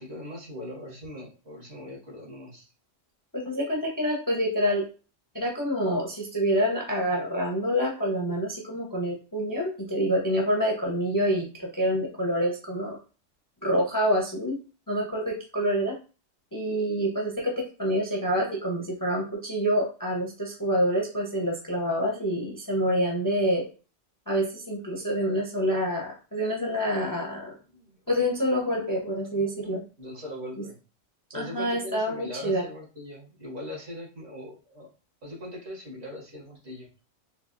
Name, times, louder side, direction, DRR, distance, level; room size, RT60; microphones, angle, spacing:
voice 1, 0.0-2.7 27.7-28.0 30.0-30.8 31.3-34.9 35.2-36.9, left 1 dB, 60° right, -4 dB, 1.8 m, -40 dB
voice 2, 3.3-4.8 5.3-13.0 13.6-14.6 14.9-15.9 16.5-23.7 24.3-27.6 28.1-29.8 31.3-32.6, equal, 25° left, -1 dB, 0.5 m, -27 dB
3.9 x 2.7 x 2.5 m, 0.35 s
omnidirectional pair, 1.3 m